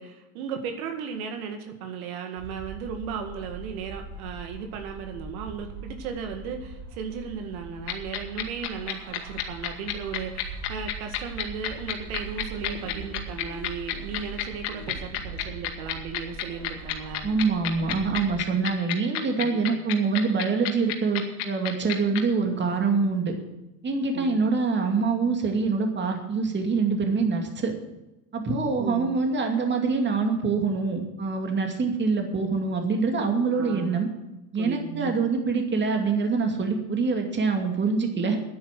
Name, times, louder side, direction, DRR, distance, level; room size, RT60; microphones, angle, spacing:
voice 1, 0.0-17.3 19.3-19.8 24.1-24.5 28.8-29.2 33.5-34.0 34.6-35.1 38.1-38.4, right 6 dB, 70° right, 5 dB, 2.1 m, -36 dB
sound 1, 2.4-18.4, right 3 dB, 85° right, 4.3 m, -41 dB
sound 2, 7.9-22.2, left 15 dB, 70° left, 2.2 m, -29 dB
voice 2, 17.2-23.3 23.8-27.7 28.3-34.1 34.5-38.4, right 4 dB, 25° right, 3 dB, 2.5 m, -25 dB
10.0 x 9.9 x 7.5 m, 0.98 s
supercardioid pair, 105°, 45 cm